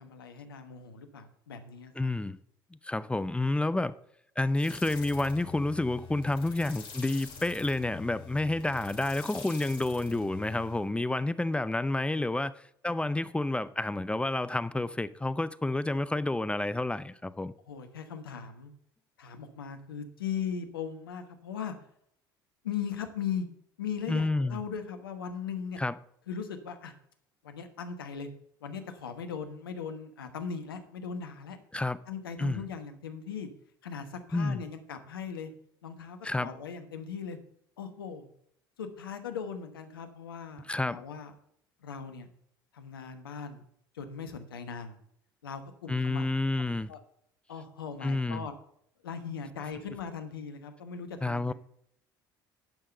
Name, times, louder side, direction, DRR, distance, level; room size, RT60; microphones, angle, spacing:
voice 1, 0.0-2.1 17.7-18.7 19.2-21.7 22.6-23.5 23.8-25.8 26.3-26.9 27.4-28.3 28.6-31.6 32.1-33.5 33.8-35.5 35.8-37.4 37.8-38.3 38.8-41.3 41.8-42.3 42.7-43.6 43.9-45.0 45.4-46.3 46.9-47.0 47.5-48.5 49.0-51.5, left 7 dB, 80° left, 1.1 m, -39 dB
voice 2, 2.0-2.4 2.8-3.9 4.4-17.5 24.1-24.6 25.8-26.0 31.7-32.0 32.4-32.6 34.3-34.6 36.2-36.5 40.7-41.0 45.9-46.9 48.0-48.5 51.2-51.5, left 2 dB, 10° left, 0.5 m, -29 dB
sound 1, 4.5-10.9, left 5 dB, 45° left, 3.3 m, -46 dB
10.5 x 5.7 x 6.6 m
hypercardioid pair, 60°, 12 cm